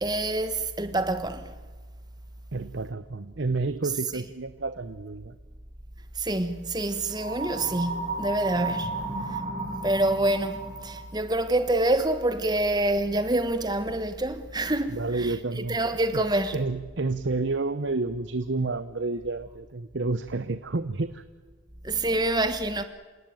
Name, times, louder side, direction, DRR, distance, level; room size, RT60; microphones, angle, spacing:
voice 1, 0.0-1.5 6.2-9.1 9.8-16.6 21.8-22.8, right 2 dB, 20° right, 1.3 m, -26 dB
voice 2, 2.5-5.4 8.8-9.3 14.9-15.8 16.1-16.2 16.5-21.2, right 3 dB, 55° right, 0.8 m, -30 dB
sound 1, 7.1-11.1, right 3 dB, 35° right, 3.4 m, -33 dB
28.0 x 18.0 x 9.2 m
head